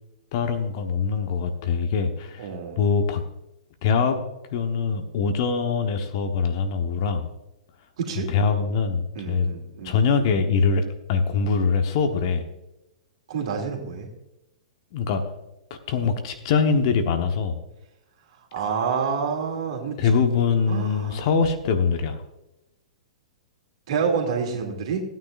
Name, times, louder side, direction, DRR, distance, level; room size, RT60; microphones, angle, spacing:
voice 1, 0.3-2.5 2.8-3.2 3.8-4.2 4.5-7.3 8.3-9.5 9.8-12.5 14.9-15.2 15.9-17.6 20.0-22.2, left 5 dB, 45° left, 6 dB, 1.1 m, -23 dB
voice 2, 2.4-2.8 8.0-8.3 9.1-10.0 13.3-14.1 18.5-20.1 20.7-21.3 23.9-25.0, right 6 dB, 50° right, 2 dB, 2.6 m, -28 dB
17.0 x 9.3 x 2.6 m, 0.93 s
figure-of-eight pair, 105°, 4 cm